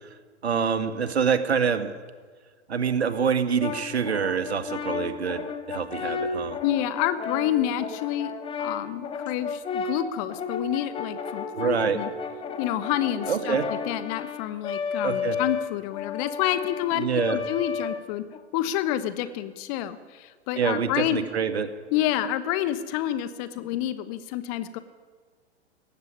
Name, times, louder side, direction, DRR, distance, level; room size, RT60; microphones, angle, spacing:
voice 1, 0.4-1.9 2.7-6.6 11.5-12.0 13.3-13.6 15.0-15.4 16.9-17.4 20.6-21.7, right 6 dB, 65° right, 10 dB, 1.9 m, -26 dB
Brass instrument, 3.6-18.4, left 5 dB, 15° left, 1.6 m, -33 dB
voice 2, 6.6-12.1 12.6-18.3 18.5-21.3 21.9-24.8, left 12 dB, 30° left, 13 dB, 1.1 m, -28 dB
18.5 x 15.0 x 9.6 m, 1.5 s
figure-of-eight pair, 110°, 35 cm